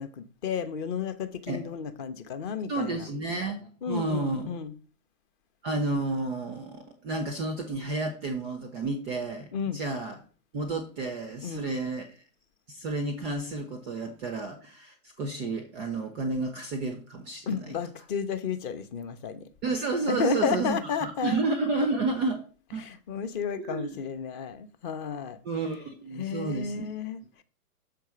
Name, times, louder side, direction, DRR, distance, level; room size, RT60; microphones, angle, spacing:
voice 1, 0.0-3.1 3.8-4.7 9.5-9.8 11.4-11.7 17.5-19.5 20.1-21.4 22.8-25.4 26.1-27.4, left 7 dB, 35° left, 0.8 m, -32 dB
voice 2, 2.7-4.5 5.6-10.1 10.5-12.2 12.7-17.8 19.6-22.4 22.7-22.8 23.6-24.0 25.4-26.9, right 3 dB, ahead, 0.3 m, -31 dB
6.8 x 4.6 x 6.3 m
hypercardioid pair, 120°, 46 cm